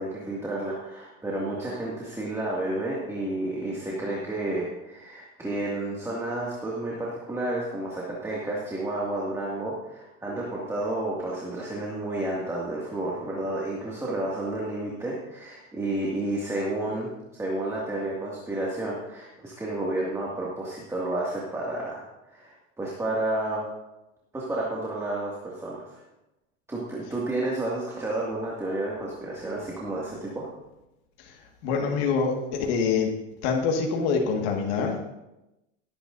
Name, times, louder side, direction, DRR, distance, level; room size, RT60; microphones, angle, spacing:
voice 1, 0.0-17.1 17.4-23.7 24.3-26.0 26.7-30.5, right 2 dB, 5° right, -5 dB, 2.2 m, -31 dB
voice 2, 31.2-33.1 33.4-35.0, left 5 dB, 55° left, 1 dB, 1.9 m, -26 dB
18.0 x 9.7 x 2.7 m, 0.94 s
supercardioid pair, 125°, 39 cm